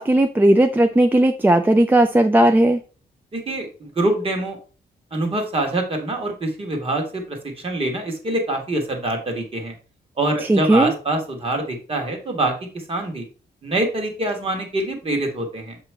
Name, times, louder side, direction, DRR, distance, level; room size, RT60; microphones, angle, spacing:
voice 1, 0.0-2.8 10.5-10.9, right 1 dB, 10° right, 6 dB, 0.3 m, -16 dB
voice 2, 3.3-4.6 5.1-9.7 10.2-12.5 12.9-13.2 13.6-15.8, right 2 dB, 30° right, 2 dB, 1.5 m, -25 dB
6.9 x 3.0 x 4.5 m, 0.37 s
wide cardioid pair, 155°, 18 cm